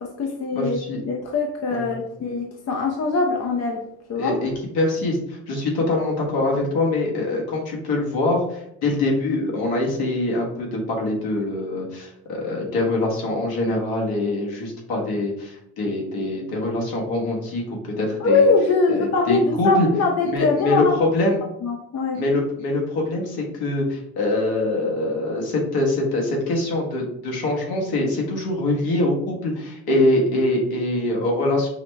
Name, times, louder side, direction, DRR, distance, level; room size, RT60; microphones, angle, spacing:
voice 1, 0.0-3.8 4.1-4.4 18.2-21.0 21.6-22.2, left 4 dB, 40° left, 1 dB, 0.7 m, -22 dB
voice 2, 0.5-1.0 1.7-1.9 4.2-17.6 18.0-18.5 18.9-19.9 20.2-21.4 22.1-31.7, left 2 dB, 65° left, -1 dB, 1.5 m, -24 dB
5.5 x 2.1 x 3.3 m, 0.76 s
hypercardioid pair, 60°, 41 cm